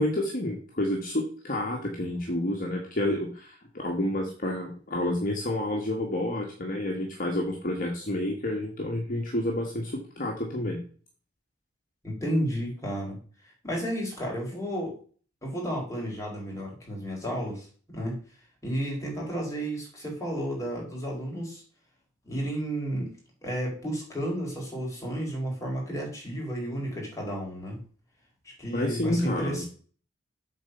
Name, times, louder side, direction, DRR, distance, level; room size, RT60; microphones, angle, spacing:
voice 1, 0.0-10.8 28.7-29.6, left 1 dB, 45° left, 0 dB, 1.6 m, -29 dB
voice 2, 12.0-13.2 13.6-14.9 15.4-18.2 18.6-21.6 22.2-23.1 23.4-27.8 28.4-29.7, equal, 15° left, -3 dB, 4.5 m, -32 dB
7.9 x 4.4 x 6.7 m, 0.41 s
head